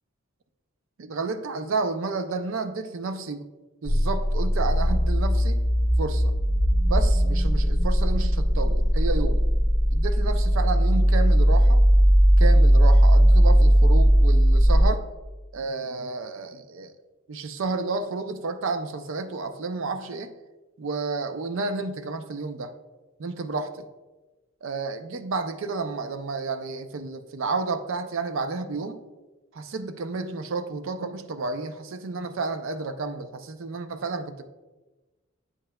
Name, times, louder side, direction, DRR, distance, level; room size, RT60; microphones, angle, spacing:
voice 1, 1.0-3.5 3.8-5.6 6.0-6.3 6.9-9.5 9.9-11.8 12.4-15.1 15.5-16.9 17.3-20.3 20.8-22.7 23.2-23.9 24.6-29.0 29.5-34.4, right 3 dB, 70° right, 10 dB, 0.4 m, -31 dB
sound 1, 3.9-14.8, equal, 40° right, 1.6 m, -18 dB
8.2 x 5.5 x 2.2 m, 1.2 s
head